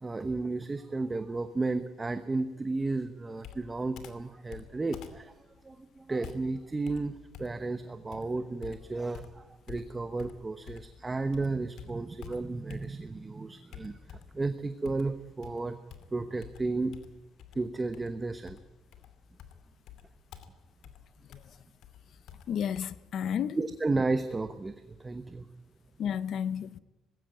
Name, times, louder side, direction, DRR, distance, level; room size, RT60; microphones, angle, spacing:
voice 1, 0.0-15.8 16.1-17.0 17.5-18.6 21.5-21.6 23.6-25.5, right 3 dB, 15° right, 1.0 m, -33 dB
Computer keyboard, 3.4-11.0 11.3-13.2 13.7-14.5 14.8-22.8, left 9 dB, 70° left, 2.5 m, -50 dB
voice 2, 22.5-23.6 26.0-26.8, left 8 dB, 55° left, 0.8 m, -32 dB
20.5 x 16.0 x 9.1 m
cardioid pair, 135°, 0 cm